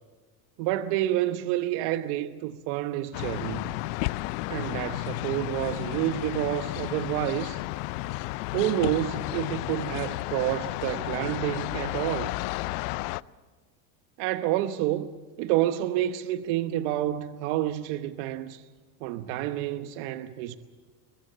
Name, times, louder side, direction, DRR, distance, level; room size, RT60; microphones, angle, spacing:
voice 1, 0.6-3.8 4.5-7.6 8.5-12.4 14.2-18.6 19.0-20.6, right 13 dB, 65° right, 1.1 m, -29 dB
sound 1, 3.1-13.2, left 21 dB, 70° left, 0.6 m, -32 dB
22.0 x 21.5 x 7.4 m
supercardioid pair, 130°, 49 cm